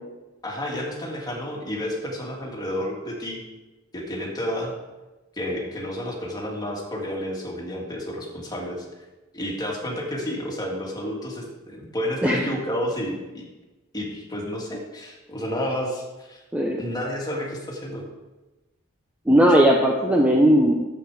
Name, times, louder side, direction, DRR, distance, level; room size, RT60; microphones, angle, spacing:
voice 1, 0.4-3.4 3.9-4.7 5.4-8.9 9.3-13.5 13.9-16.4 16.8-18.0, equal, 20° left, -2 dB, 2.1 m, -30 dB
voice 2, 19.3-20.8, equal, 5° right, 0 dB, 0.8 m, -17 dB
11.0 x 8.1 x 4.9 m, 1.1 s
head